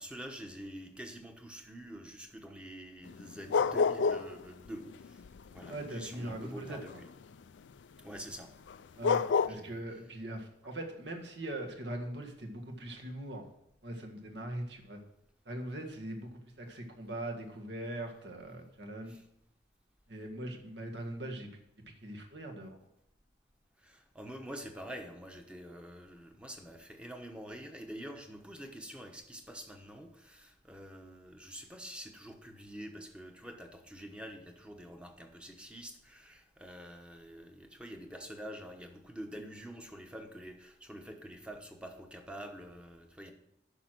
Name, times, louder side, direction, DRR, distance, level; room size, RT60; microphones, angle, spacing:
voice 1, 0.0-5.2 5.5-6.9 8.0-8.5 9.5-9.7 19.1-19.2 23.8-43.3, equal, 5° right, 4 dB, 1.0 m, -46 dB
sound 1, 3.1-4.4 4.7-7.1 8.7-8.8 9.0-9.5, left 5 dB, 80° left, 0.4 m, -29 dB
voice 2, 5.7-7.0 9.0-13.5 13.8-15.0 15.4-16.3 16.6-19.2 20.1-21.6 22.0-22.9, right 1 dB, 70° right, 3 dB, 1.7 m, -41 dB
9.9 x 6.1 x 6.1 m, 0.76 s
head